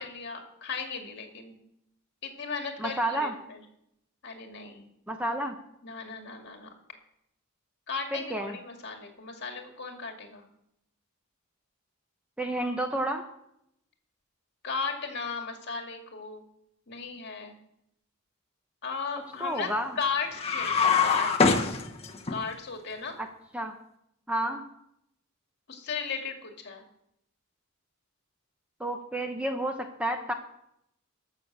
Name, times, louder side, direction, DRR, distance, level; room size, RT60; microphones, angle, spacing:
voice 1, 0.0-1.5 2.2-3.6 4.2-4.9 5.8-6.7 7.9-10.4 14.6-16.4 16.9-17.5 18.8-19.7 20.0-21.8 22.3-23.2 25.7-26.8, left 5 dB, 50° left, 3 dB, 2.2 m, -36 dB
voice 2, 2.8-3.3 5.1-5.5 8.1-8.6 12.4-13.2 19.4-20.0 23.2-23.3 23.5-23.7 24.3-24.6 28.8-30.3, right 1 dB, 5° right, 5 dB, 0.8 m, -30 dB
sound 1, 20.3-22.4, left 5 dB, 30° left, 1.1 m, -24 dB
14.0 x 6.6 x 6.6 m, 0.78 s
head